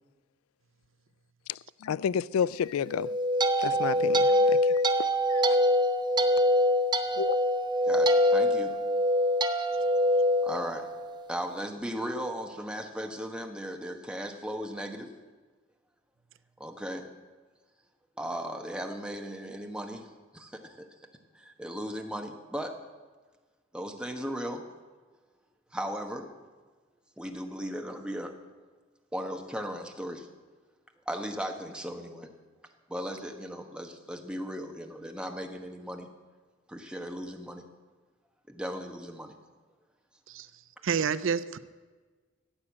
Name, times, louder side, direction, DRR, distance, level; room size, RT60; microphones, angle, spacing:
voice 1, 1.8-3.1 3.6-4.3 5.1-5.4 7.2-7.4, left 7 dB, 85° left, 0.3 m, -30 dB
sound 1, 2.9-11.2, equal, 20° right, 0.8 m, -24 dB
voice 2, 7.9-8.8 10.4-10.9 11.3-15.1 16.6-17.1 18.2-20.1 20.3-20.9 21.3-22.7 23.7-24.6 25.7-26.3 27.2-28.3 29.1-30.3 31.1-32.3 32.9-36.1 36.7-37.6 38.5-39.3, equal, 5° right, 1.2 m, -37 dB
voice 3, 40.8-41.6, right 6 dB, 65° right, 0.5 m, -28 dB
14.5 x 8.7 x 7.4 m
head